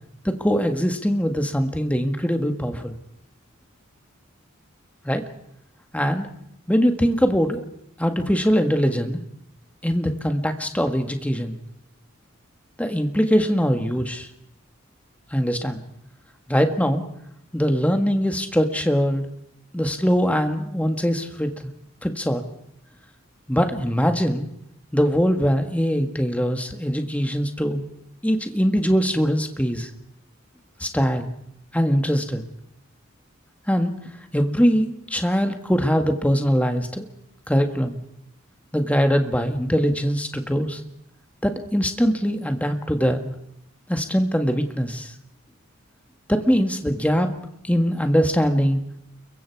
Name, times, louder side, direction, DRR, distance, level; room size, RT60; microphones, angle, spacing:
voice 1, 0.3-2.9 5.1-5.2 5.9-6.3 6.7-7.6 8.0-9.2 9.8-11.6 12.8-14.3 15.3-15.8 16.5-17.0 17.5-19.3 19.7-21.7 22.0-22.4 23.5-24.5 24.9-27.8 28.2-29.9 30.8-31.3 31.7-32.4 33.7-34.0 34.3-37.1 37.5-38.0 38.7-40.8 41.4-43.3 43.9-45.1 46.3-47.3 47.6-48.8, equal, 5° left, 6 dB, 1.7 m, -22 dB
29.5 x 23.0 x 4.7 m, 0.76 s
head